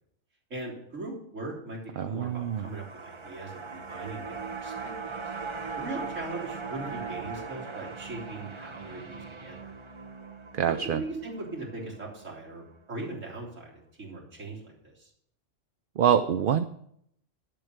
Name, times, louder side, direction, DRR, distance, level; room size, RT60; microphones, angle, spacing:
voice 1, 0.5-5.3 5.8-9.7 10.7-15.1, right 2 dB, 75° right, -4 dB, 3.8 m, -40 dB
voice 2, 2.0-2.7 10.5-11.0 16.0-16.6, right 9 dB, 55° right, 10 dB, 0.6 m, -25 dB
sound 1, 2.3-12.7 13.0-13.1, right 5 dB, 25° right, 0.8 m, -40 dB
11.0 x 7.7 x 6.5 m, 0.70 s
omnidirectional pair, 1.3 m